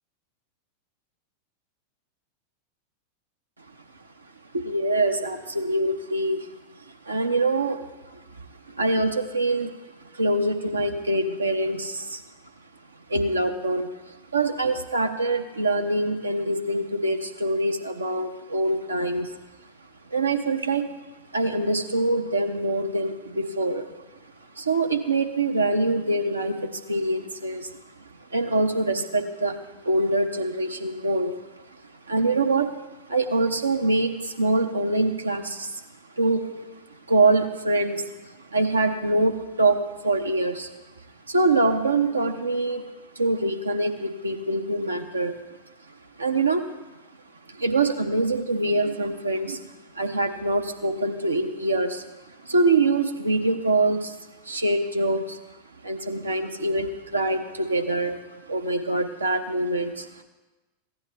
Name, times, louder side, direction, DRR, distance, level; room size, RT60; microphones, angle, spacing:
voice 1, 4.5-6.5 7.1-9.7 10.1-12.2 13.1-19.3 20.1-20.9 21.3-23.9 24.6-27.7 28.3-29.6 29.8-31.4 31.7-31.8 32.1-32.7 33.1-35.8 36.2-36.6 37.1-40.7 41.3-42.9 43.2-45.3 46.2-46.6 47.5-54.2 54.4-55.4 55.8-60.2, right 2 dB, 80° right, 5 dB, 0.8 m, -24 dB
15.0 x 9.4 x 3.3 m, 1.1 s
figure-of-eight pair, 90°, 0 cm